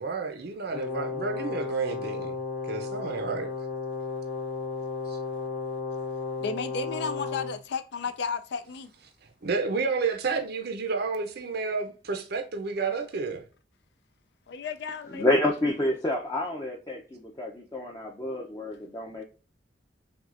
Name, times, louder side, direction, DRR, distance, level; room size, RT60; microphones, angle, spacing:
voice 1, 0.0-2.4 2.6-3.5 5.1-5.4 9.4-13.4, right 4 dB, 55° right, 0.6 m, -30 dB
Brass instrument, 0.7-7.6, left 4 dB, 45° left, 1.3 m, -34 dB
voice 2, 6.4-8.9 14.5-15.3, left 5 dB, 65° left, 0.4 m, -33 dB
voice 3, 15.1-19.2, left 1 dB, 20° left, 0.6 m, -28 dB
5.9 x 2.3 x 2.5 m
head